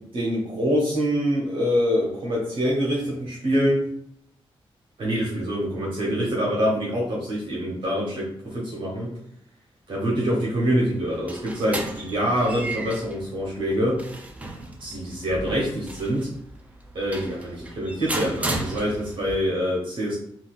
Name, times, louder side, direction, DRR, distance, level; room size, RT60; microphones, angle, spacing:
voice 1, 0.1-3.8 5.0-9.1 9.9-14.0 14.8-16.3 16.9-20.1, equal, 60° right, -4 dB, 1.0 m, -25 dB
sound 1, 10.9-19.3, right 2 dB, 15° right, 0.4 m, -35 dB
3.7 x 2.4 x 2.4 m, 0.69 s
wide cardioid pair, 140°, 10 cm